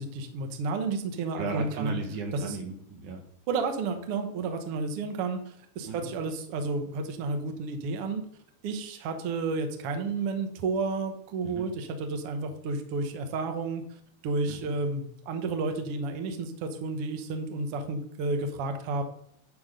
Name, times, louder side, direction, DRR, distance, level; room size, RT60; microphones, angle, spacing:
voice 1, 0.2-2.0 2.3-2.6 3.5-8.2 8.6-13.8 14.2-19.0, right 3 dB, 80° right, 5 dB, 1.2 m, -31 dB
voice 2, 1.3-3.2 5.8-6.1 11.4-11.7 14.5-14.7, right 4 dB, 65° right, 2 dB, 2.7 m, -36 dB
11.0 x 3.8 x 6.6 m, 0.69 s
omnidirectional pair, 4.2 m